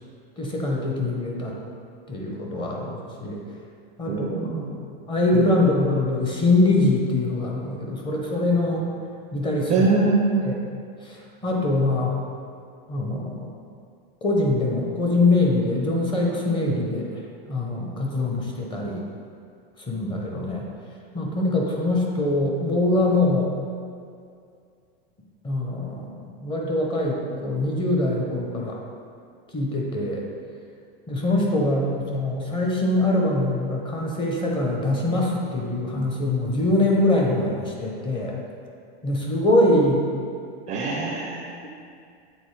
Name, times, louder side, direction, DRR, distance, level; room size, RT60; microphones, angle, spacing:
voice 1, 0.4-1.6 2.1-3.4 4.0-4.7 5.1-8.9 9.3-9.9 10.4-10.5 11.0-12.2 12.9-13.5 14.2-17.1 17.5-19.1 19.8-20.7 21.1-23.5 25.4-26.2 26.4-28.8 29.5-30.2 31.1-38.4 39.0-40.0, left 2 dB, 15° left, -1 dB, 0.8 m, -23 dB
voice 2, 4.1-4.7 5.3-5.4 9.7-10.5 40.7-41.5, right 3 dB, 25° right, -1 dB, 0.5 m, -23 dB
7.9 x 3.8 x 3.2 m, 2.3 s
supercardioid pair, 140°, 31 cm